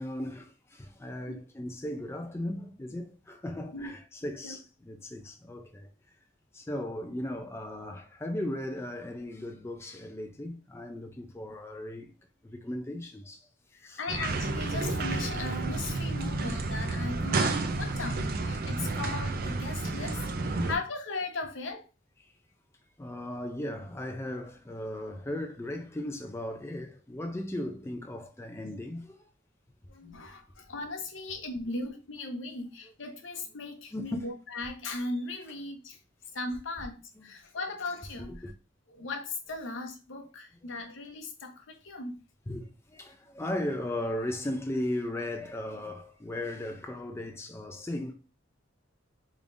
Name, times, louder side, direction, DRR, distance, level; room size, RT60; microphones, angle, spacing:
voice 1, 0.0-5.9 6.5-12.1 12.4-13.5 13.8-14.0 20.0-20.1 20.5-20.7 22.2-22.3 23.0-29.2 33.9-34.2 37.2-37.3 38.3-38.5 40.6-40.7 42.5-48.1, left 1 dB, 15° left, 0.4 m, -37 dB
voice 2, 14.0-21.9 28.5-28.8 29.9-36.0 36.3-38.5 38.9-42.2, left 2 dB, 75° left, 0.9 m, -38 dB
sound 1, 14.1-20.7, right 3 dB, 50° right, 0.4 m, -31 dB
3.5 x 3.4 x 2.5 m
head